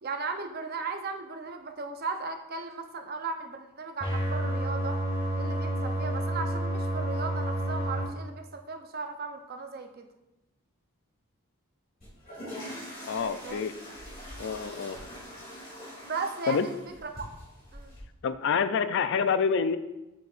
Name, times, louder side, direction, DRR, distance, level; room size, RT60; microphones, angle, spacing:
voice 1, 0.0-5.0 5.3-10.1 13.4-13.7 16.0-16.8 17.0-17.3 17.7-17.9, right 4 dB, 45° right, 6 dB, 0.6 m, -36 dB
sound 1, 4.0-8.0, right 1 dB, 25° left, 2.0 m, -29 dB
sound 2, 12.0-18.0, equal, 40° left, 2.6 m, -43 dB
voice 2, 13.1-13.7 14.4-15.0 16.5-16.7 18.2-19.8, left 6 dB, 55° left, 12 dB, 0.4 m, -27 dB
7.9 x 6.8 x 2.5 m, 0.99 s
head